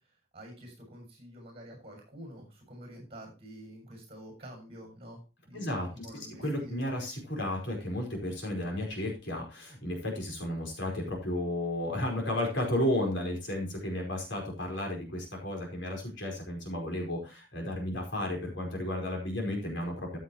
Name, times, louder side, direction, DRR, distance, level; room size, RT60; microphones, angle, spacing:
voice 1, 0.3-6.9, equal, 30° right, 2 dB, 6.9 m, -48 dB
voice 2, 5.5-20.2, left 1 dB, 65° left, 1 dB, 4.9 m, -33 dB
14.5 x 8.0 x 3.0 m, 0.29 s
head